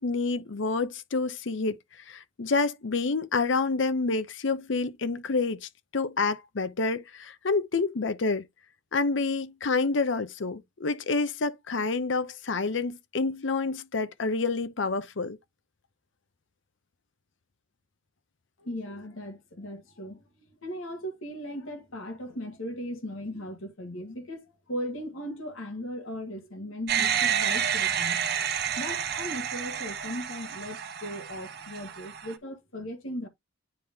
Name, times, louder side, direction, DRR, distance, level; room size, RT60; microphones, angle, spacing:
voice 1, 0.0-1.8 2.1-8.4 8.9-15.4, left 3 dB, 60° left, 0.7 m, -28 dB
voice 2, 18.6-28.2 28.8-33.3, equal, 80° left, 1.6 m, -38 dB
sound 1, 26.9-32.3, right 8 dB, 50° right, 0.9 m, -29 dB
9.8 x 3.6 x 2.8 m
head